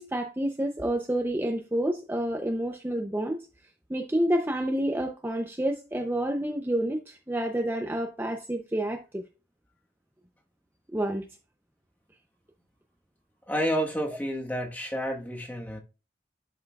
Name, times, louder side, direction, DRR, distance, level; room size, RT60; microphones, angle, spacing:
voice 1, 0.0-3.4 3.9-9.2 10.9-11.3, right 1 dB, 10° right, 0.5 m, -29 dB
voice 2, 13.5-15.8, equal, 10° left, 1.2 m, -30 dB
11.5 x 5.5 x 2.3 m
head